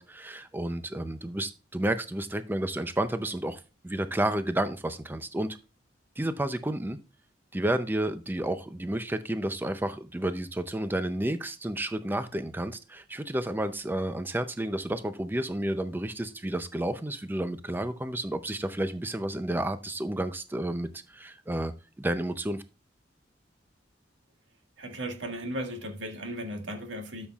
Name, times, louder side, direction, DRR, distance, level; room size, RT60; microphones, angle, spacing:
voice 1, 0.0-5.6 6.2-7.0 7.5-21.7 22.0-22.6, right 1 dB, 10° right, 0.5 m, -31 dB
voice 2, 24.8-27.3, right 1 dB, 90° right, 1.7 m, -36 dB
13.0 x 7.2 x 2.4 m
head